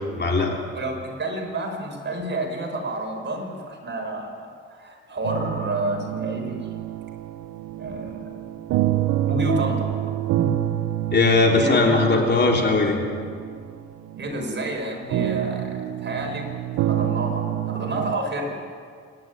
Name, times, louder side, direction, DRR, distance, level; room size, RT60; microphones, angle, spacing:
voice 1, 0.2-0.6 11.1-13.0, left 3 dB, 35° left, 1 dB, 3.5 m, -19 dB
voice 2, 0.7-6.6 7.8-8.6 9.2-9.9 10.3-10.6 11.5-12.2 14.2-16.4 16.8-18.7, right 1 dB, 35° right, 2 dB, 5.6 m, -30 dB
sound 1, 5.2-18.2, right 13 dB, 90° right, 0.8 m, -28 dB
27.5 x 12.0 x 9.4 m, 2.1 s
cardioid pair, 90°, 30 cm